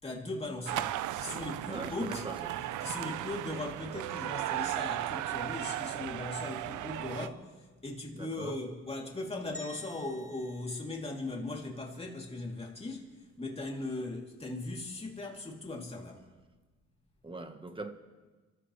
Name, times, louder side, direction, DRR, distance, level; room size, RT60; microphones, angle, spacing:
voice 1, 0.0-2.2 2.6-16.3, left 2 dB, 20° left, 3.1 m, -39 dB
sound 1, 0.7-7.3, right 14 dB, 80° right, 0.6 m, -36 dB
voice 2, 1.7-2.6 8.1-8.5 17.2-17.9, right 2 dB, 15° right, 1.4 m, -41 dB
sound 2, 9.5-11.8, left 1 dB, 5° left, 4.4 m, -52 dB
28.5 x 14.5 x 3.3 m
cardioid pair, 90°, 30 cm